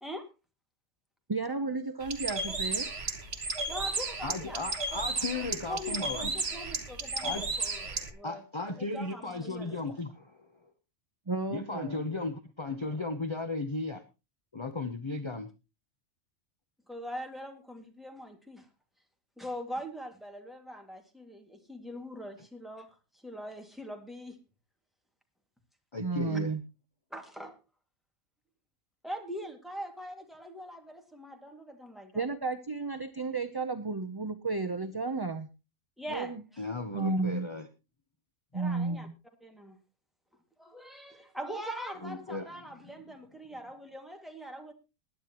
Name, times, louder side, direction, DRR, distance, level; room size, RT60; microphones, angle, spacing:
voice 1, 1.3-2.9 11.3-12.2 26.0-26.6 32.1-35.5 36.1-36.4 36.9-37.5 38.5-39.1, right 3 dB, 25° right, 9 dB, 0.6 m, -33 dB
Bird, 2.0-8.1, right 3 dB, 55° right, 1.9 m, -34 dB
voice 2, 3.7-4.6 5.3-8.4 8.8-9.8 16.9-18.7 19.4-22.9 23.2-24.4 27.1-27.6 29.0-32.2 36.0-36.3 38.5-39.1 39.4-39.8 40.6-44.7, equal, ahead, 4 dB, 2.1 m, -42 dB
voice 3, 4.2-6.3 7.2-7.5 8.2-10.4 11.5-14.0 14.5-15.5 25.9-26.5 36.6-37.7 42.0-42.5 42.8-42.9, left 3 dB, 25° left, 9 dB, 0.8 m, -35 dB
20.5 x 10.0 x 3.0 m, 0.28 s
omnidirectional pair, 1.3 m